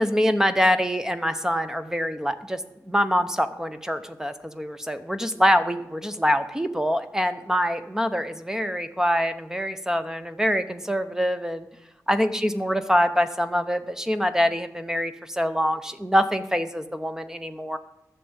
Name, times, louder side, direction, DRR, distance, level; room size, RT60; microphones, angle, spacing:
voice 1, 0.0-2.6 2.9-11.7 12.1-17.8, equal, 10° right, 9 dB, 0.7 m, -24 dB
11.5 x 6.7 x 7.9 m, 0.88 s
wide cardioid pair, 105°, 7 cm